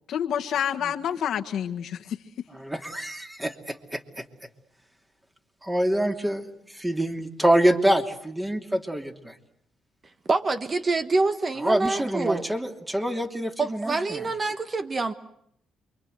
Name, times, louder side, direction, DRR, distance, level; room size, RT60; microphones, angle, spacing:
voice 1, 0.1-2.2, left 9 dB, 70° left, 6 dB, 1.6 m, -28 dB
voice 2, 2.5-4.3 5.6-9.3 11.6-14.3, right 1 dB, 10° right, 4 dB, 2.9 m, -26 dB
voice 3, 10.3-12.4 13.6-15.1, right 3 dB, 30° right, 10 dB, 1.4 m, -26 dB
28.5 x 24.0 x 8.0 m, 0.72 s
cardioid pair, 90°, 0 cm